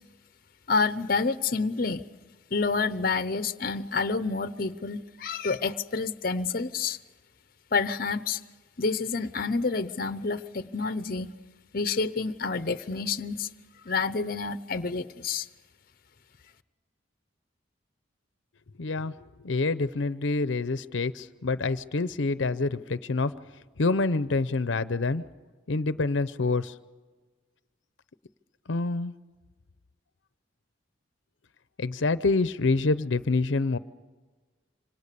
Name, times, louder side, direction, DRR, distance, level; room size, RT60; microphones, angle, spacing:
voice 1, 0.7-2.0 2.5-7.0 7.7-8.4 8.8-11.3 11.7-13.5 13.9-15.5, left 4 dB, 50° left, 13 dB, 0.8 m, -28 dB
voice 2, 18.8-19.1 19.4-23.3 23.8-25.2 25.7-26.7 28.7-29.1 31.8-33.8, left 3 dB, 80° left, 14 dB, 0.7 m, -26 dB
27.0 x 26.0 x 6.8 m, 1.3 s
head